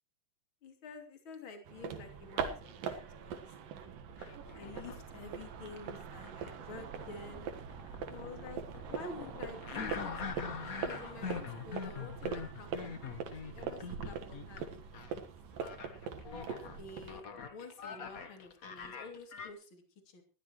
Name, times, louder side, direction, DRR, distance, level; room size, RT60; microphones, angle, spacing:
voice 1, 0.6-3.5 4.5-7.5 8.1-10.2 10.8-12.7 13.0-14.8 15.1-15.2 16.4-16.5 16.7-20.2, left 4 dB, 40° left, 5 dB, 3.3 m, -49 dB
sound 1, 1.7-17.2, right 6 dB, 90° right, 3.2 m, -42 dB
sound 2, 4.2-5.2 5.7-14.7 14.9-15.1 15.6-19.5, left 6 dB, 65° left, 0.8 m, -43 dB
20.0 x 15.5 x 3.1 m, 0.33 s
omnidirectional pair, 3.8 m